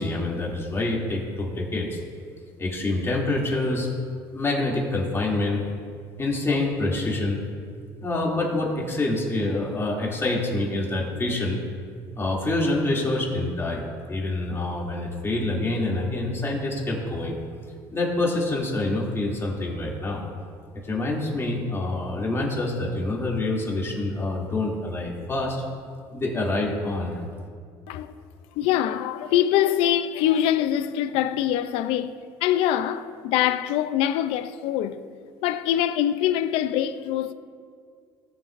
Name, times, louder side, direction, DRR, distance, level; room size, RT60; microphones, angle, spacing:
voice 1, 0.0-2.0 2.6-3.9 4.3-5.6 6.2-7.4 8.0-11.6 12.2-13.8 14.1-17.4 17.9-20.2 20.8-25.6 26.1-27.2, left 2 dB, 25° left, 2.6 m, -26 dB
voice 2, 28.5-32.1 32.4-35.1 35.4-37.3, left 11 dB, 80° left, 0.5 m, -24 dB
18.0 x 7.2 x 2.6 m
supercardioid pair, 90°, 10 cm